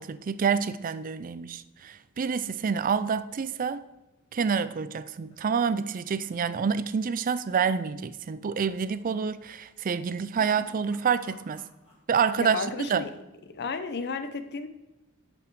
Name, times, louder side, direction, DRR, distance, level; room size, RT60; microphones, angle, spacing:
voice 1, 0.0-3.8 4.3-11.6 12.1-13.0, right 6 dB, 40° right, 0.4 m, -28 dB
sound 1, 5.0-6.9 7.1-7.5 7.8-7.9 8.6-9.0 9.9-12.3 12.6-13.2, left 1 dB, 30° left, 3.1 m, -56 dB
voice 2, 12.4-13.1 13.5-14.7, left 4 dB, 50° left, 0.7 m, -33 dB
11.0 x 5.2 x 4.7 m
head